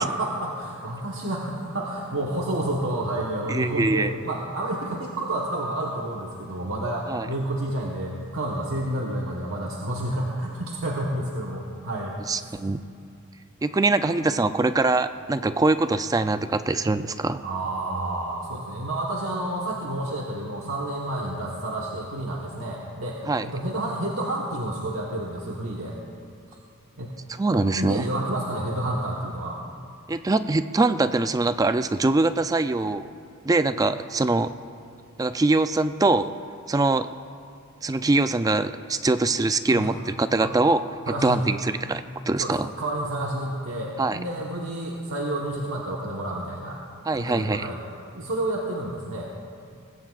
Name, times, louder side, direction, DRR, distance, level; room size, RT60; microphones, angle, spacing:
voice 1, 0.0-12.5 17.4-26.0 27.0-27.1 27.5-29.6 39.7-39.9 40.4-40.5 41.1-41.5 42.4-46.8 47.1-47.8 48.1-49.3, right 1 dB, 75° right, -3 dB, 1.3 m, -30 dB
voice 2, 3.5-4.1 7.1-7.3 12.3-12.8 13.6-17.4 23.3-23.5 27.4-28.0 30.1-33.1 33.4-34.5 35.2-36.3 36.7-37.1 37.8-42.7 44.0-44.2 47.1-47.7, right 3 dB, 15° right, 11 dB, 0.4 m, -23 dB
20.5 x 16.0 x 2.4 m, 2.4 s
head